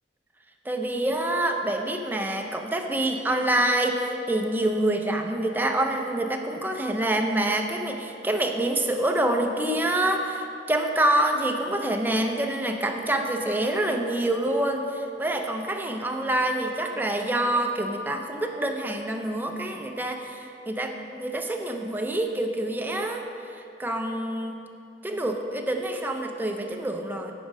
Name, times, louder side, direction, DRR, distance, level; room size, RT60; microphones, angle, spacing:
voice 1, 0.7-23.2 23.5-24.6 25.0-27.3, right 1 dB, 10° right, 3 dB, 0.5 m, -26 dB
8.9 x 5.2 x 4.9 m, 2.6 s
head